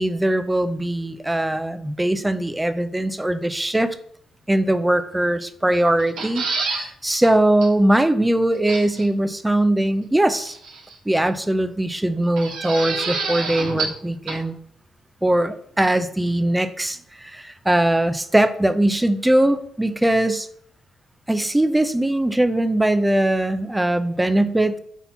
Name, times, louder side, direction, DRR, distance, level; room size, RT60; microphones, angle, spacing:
voice 1, 0.0-4.0 4.5-10.6 11.1-14.6 15.2-20.5 21.3-24.8, right 1 dB, 10° right, 11 dB, 0.6 m, -21 dB
sound 1, 6.0-6.9 7.2-7.3 7.6-7.7 8.7-9.1 10.3-10.9 12.4-14.0 14.3-14.4, right 4 dB, 85° right, 1.7 m, -28 dB
5.7 x 4.4 x 5.7 m, 0.66 s
cardioid pair, 90°, 0 cm